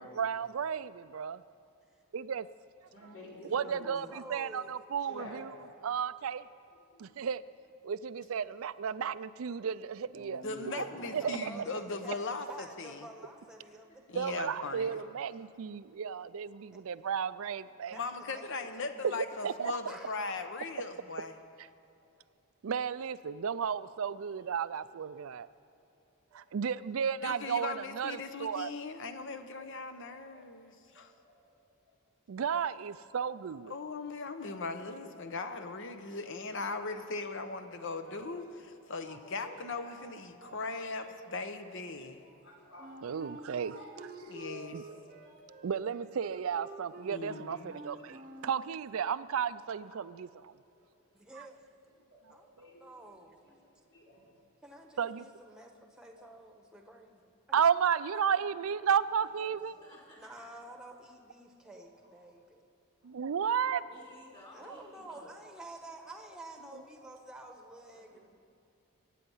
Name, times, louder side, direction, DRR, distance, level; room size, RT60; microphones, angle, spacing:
voice 1, 0.2-1.4 2.1-2.5 3.5-5.4 5.8-6.4 7.0-7.4 7.8-10.4 10.7-10.8 11.1-11.6 14.1-18.0 19.0-19.7 21.6-21.7 22.6-25.5 26.3-28.7 32.3-33.7 40.4-40.6 43.0-43.7 44.7-44.8 45.6-50.5 51.4-51.5 55.0-55.2 57.5-59.7 63.0-63.8, right 7 dB, 65° right, 16 dB, 0.4 m, -33 dB
voice 2, 2.8-4.1 5.0-5.4 6.9-7.2 9.9-12.2 16.2-16.6 19.3-19.4 22.0-22.1 24.3-24.5 25.5-25.8 26.3-26.6 30.0-30.6 30.9-31.5 31.9-32.0 32.8-32.9 34.0-34.1 34.4-34.6 35.2-35.3 37.4-37.6 38.0-38.4 38.6-40.0 40.3-41.0 42.1-45.7 46.9-48.5 50.6-51.1 52.1-53.2 53.4-54.3 54.7-54.8 56.2-56.3 59.7-59.8 61.6-62.1 63.0-63.3 65.4-65.6, left 1 dB, 75° left, -4 dB, 4.1 m, -54 dB
voice 3, 3.6-4.7 11.0-14.0 14.5-14.8 17.9-19.2 19.9-20.2 51.1-51.7 52.3-53.6 54.6-57.6 60.2-62.6 64.5-68.2, right 1 dB, 5° right, 4 dB, 1.1 m, -50 dB
voice 4, 10.4-12.5 12.8-13.0 14.1-15.0 17.9-21.3 27.2-31.1 33.7-38.4 38.9-42.2 44.3-44.8 47.1-47.7, left 3 dB, 55° left, 8 dB, 0.9 m, -39 dB
voice 5, 12.2-12.8 13.2-13.3 13.7-14.4 58.5-58.7 59.1-60.4 63.9-65.3 67.9-68.2, left 1 dB, 25° left, -3 dB, 3.9 m, -57 dB
Wind instrument woodwind instrument, 42.8-48.7, right 3 dB, 35° right, 0.8 m, -48 dB
23.0 x 9.3 x 5.6 m, 2.5 s
head